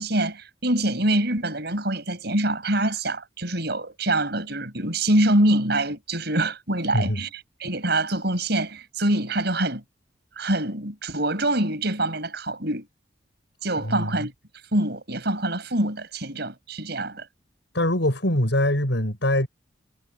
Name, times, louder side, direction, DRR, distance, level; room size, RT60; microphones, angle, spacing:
voice 1, 0.0-7.3 7.6-9.8 10.4-12.9 13.6-14.3 14.7-17.3, right 1 dB, 60° right, 7.1 m, -25 dB
voice 2, 17.7-19.5, left 1 dB, 75° left, 6.3 m, -23 dB
head